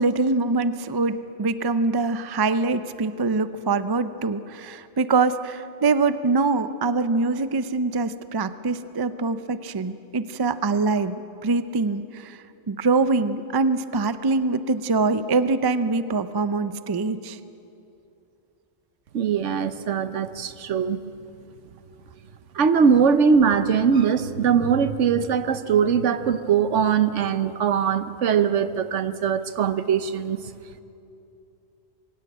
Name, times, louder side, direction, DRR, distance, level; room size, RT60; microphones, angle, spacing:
voice 1, 0.0-12.4 12.7-17.4, right 3 dB, 35° right, 13 dB, 0.3 m, -24 dB
voice 2, 19.1-21.0 22.5-30.4, right 7 dB, 65° right, 12 dB, 1.1 m, -21 dB
23.0 x 16.0 x 8.7 m, 2.8 s
omnidirectional pair, 1.4 m